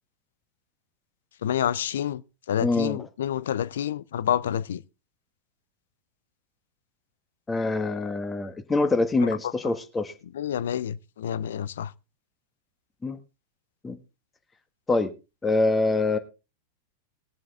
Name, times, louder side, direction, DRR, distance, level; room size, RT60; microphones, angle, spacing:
voice 1, 1.4-2.2 2.5-4.8 9.2-9.3 10.3-11.9, left 10 dB, 60° left, 0.6 m, -28 dB
voice 2, 2.6-3.0 7.5-10.1 13.0-13.2 13.8-14.0 14.9-15.1 15.4-16.2, left 3 dB, 15° left, 1.6 m, -25 dB
21.0 x 7.4 x 3.5 m
figure-of-eight pair, 90°, 0 cm